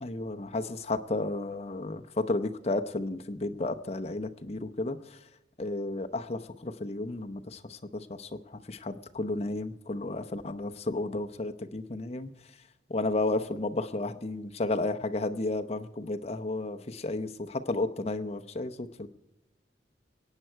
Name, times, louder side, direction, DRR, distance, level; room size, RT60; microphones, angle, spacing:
voice 1, 0.0-5.0 5.6-7.6 7.9-8.3 8.7-12.3 12.9-19.1, left 2 dB, 35° left, 7 dB, 0.8 m, -32 dB
22.0 x 9.0 x 4.6 m, 0.94 s
head